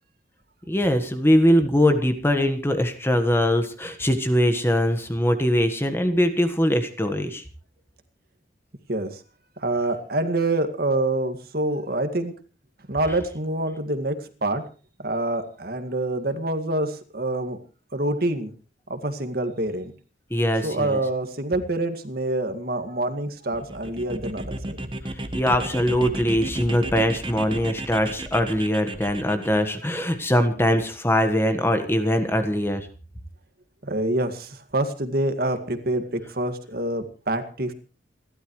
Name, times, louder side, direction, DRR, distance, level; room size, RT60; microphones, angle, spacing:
voice 1, 0.7-7.4 20.3-21.0 25.1-32.9, equal, 10° left, 7 dB, 1.5 m, -22 dB
voice 2, 8.9-9.2 9.6-12.3 12.9-14.6 15.0-17.6 17.9-18.5 18.9-19.9 20.6-24.8 33.8-37.7, right 2 dB, 50° right, 7 dB, 2.0 m, -26 dB
sound 1, 23.6-29.6, right 1 dB, 25° right, 1.4 m, -34 dB
28.5 x 12.5 x 3.2 m, 0.37 s
head